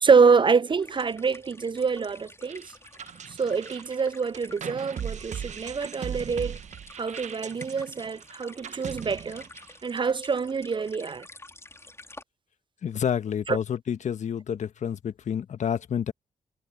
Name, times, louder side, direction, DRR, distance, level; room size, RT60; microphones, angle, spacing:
voice 1, 0.0-2.6 3.3-6.6 7.0-9.4 9.8-11.3 13.5-13.6, right 5 dB, 35° right, 0.6 m, -25 dB
sound 1, 0.7-12.2, left 2 dB, 20° left, 4.3 m, -49 dB
sound 2, 2.4-9.9, right 8 dB, 60° right, 1.3 m, -39 dB
voice 2, 12.8-16.1, left 8 dB, 60° left, 1.6 m, -29 dB
hypercardioid pair, 45°, 14 cm